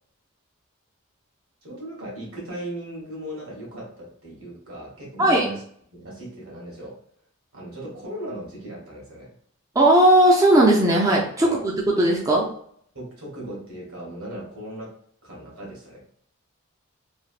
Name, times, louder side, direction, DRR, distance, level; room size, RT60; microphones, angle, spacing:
voice 1, 1.6-5.6 5.9-7.0 7.5-9.3 11.4-11.7 12.9-14.9 15.2-16.0, right 1 dB, 75° right, -4 dB, 1.4 m, -37 dB
voice 2, 9.8-11.5 12.0-12.5, right 1 dB, 15° right, -3 dB, 0.4 m, -17 dB
3.3 x 2.7 x 2.4 m, 0.63 s
head